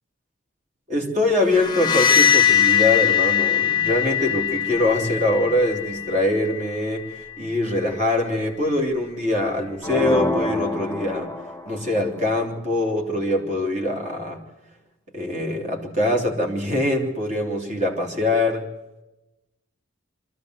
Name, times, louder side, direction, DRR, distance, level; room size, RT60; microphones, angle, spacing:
voice 1, 0.9-11.3 11.6-14.4 15.1-18.6, left 1 dB, 35° right, 2 dB, 3.3 m, -23 dB
sound 1, 1.5-7.2, left 10 dB, 20° left, 0.9 m, -21 dB
sound 2, 9.8-11.9, left 2 dB, 5° left, 2.0 m, -27 dB
24.0 x 14.0 x 8.1 m, 1.0 s
head